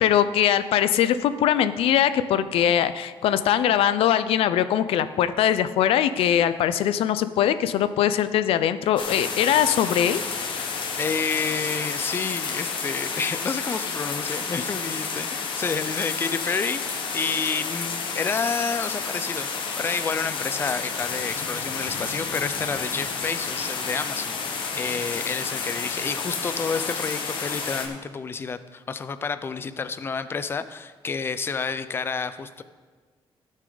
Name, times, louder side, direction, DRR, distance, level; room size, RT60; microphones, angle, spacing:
voice 1, 0.0-10.2, left 10 dB, 85° left, 12 dB, 0.5 m, -21 dB
sound 1, 9.0-27.9, left 5 dB, 60° left, 1.3 m, -30 dB
voice 2, 11.0-19.5 19.8-32.6, left 5 dB, 25° left, 12 dB, 0.4 m, -29 dB
15.5 x 6.4 x 3.9 m, 1.4 s
cardioid pair, 165°, 9 cm